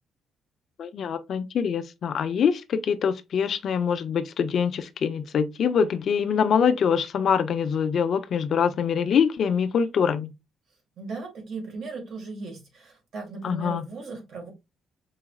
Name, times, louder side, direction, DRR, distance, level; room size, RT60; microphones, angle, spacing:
voice 1, 0.8-10.3 13.4-13.9, left 7 dB, 60° left, 0.5 m, -24 dB
voice 2, 11.0-14.5, right 4 dB, 65° right, 1.8 m, -37 dB
4.7 x 2.9 x 2.3 m
cardioid pair, 90°, 0 cm